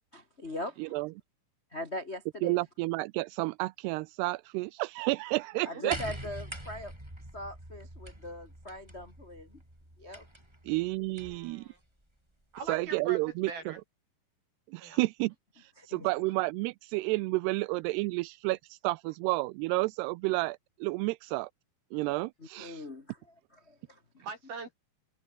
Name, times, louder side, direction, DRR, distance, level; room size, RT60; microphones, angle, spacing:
voice 1, 0.1-0.8 1.7-2.6 5.6-6.9 7.3-9.6 10.0-10.3 15.8-16.1 22.4-24.2, left 1 dB, 35° left, 1.0 m, -41 dB
voice 2, 0.8-1.1 2.4-6.0 10.7-11.7 12.7-13.7 14.7-21.5 21.9-22.8, right 22 dB, 85° right, 2.7 m, -31 dB
sound 1, 5.9-11.5 12.6-12.7, right 1 dB, 5° right, 4.7 m, -44 dB
voice 3, 11.2-11.8 12.5-13.8 14.8-15.0 24.2-24.7, right 5 dB, 65° right, 8.1 m, -42 dB
omnidirectional pair, 4.7 m